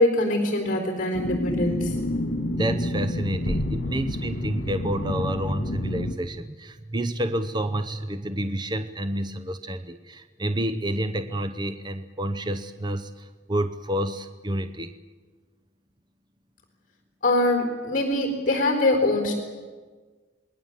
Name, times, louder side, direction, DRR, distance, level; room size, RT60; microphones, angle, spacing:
voice 1, 0.0-2.0 17.2-19.3, left 2 dB, 45° left, 4 dB, 4.1 m, -23 dB
sound 1, 1.1-6.1, left 1 dB, 75° left, 2.0 m, -29 dB
voice 2, 2.6-14.9, right 1 dB, 25° right, 9 dB, 0.7 m, -29 dB
27.5 x 21.0 x 7.4 m, 1.4 s
head